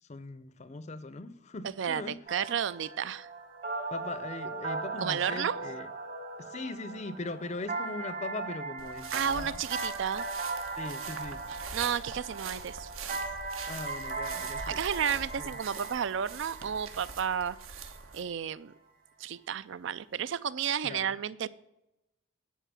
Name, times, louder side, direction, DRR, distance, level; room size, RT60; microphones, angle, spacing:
voice 1, 0.1-2.2 3.9-5.9 6.4-9.6 10.8-11.4 13.7-14.8 15.4-15.6 20.8-21.1, left 2 dB, 35° left, 0.5 m, -40 dB
voice 2, 1.8-3.3 5.0-5.6 9.1-10.3 11.6-12.9 14.7-18.7 19.2-21.5, right 8 dB, 60° right, 0.4 m, -32 dB
sound 1, 2.3-18.0, right 3 dB, 45° right, 1.4 m, -39 dB
sound 2, 8.8-18.2, right 5 dB, 80° right, 1.1 m, -43 dB
10.0 x 4.6 x 7.4 m
head